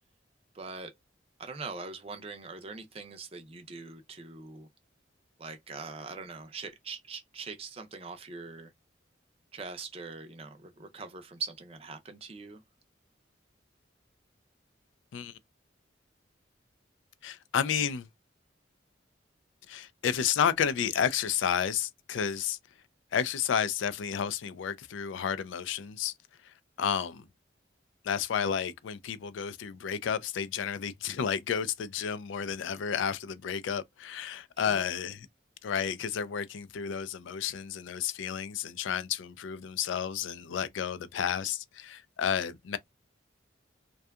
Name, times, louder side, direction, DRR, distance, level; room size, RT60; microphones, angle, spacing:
voice 1, 0.5-0.9 1.4-4.7 5.4-8.7 9.5-12.6 34.6-34.8, right 4 dB, 30° right, 0.4 m, -42 dB
voice 2, 17.2-18.1 19.7-22.6 23.1-26.1 26.4-27.2 28.0-35.3 35.6-42.8, left 8 dB, 80° left, 0.3 m, -31 dB
2.7 x 2.2 x 2.2 m
head